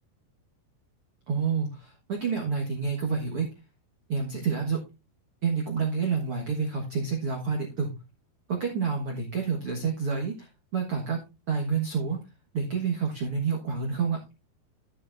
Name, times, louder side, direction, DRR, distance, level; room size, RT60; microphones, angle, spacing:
voice 1, 1.3-3.5 4.1-4.8 5.4-7.9 8.5-11.2 11.5-12.2 12.5-14.2, right 5 dB, 80° right, -1 dB, 1.2 m, -28 dB
11.0 x 9.6 x 2.6 m, 0.27 s
omnidirectional pair, 5.0 m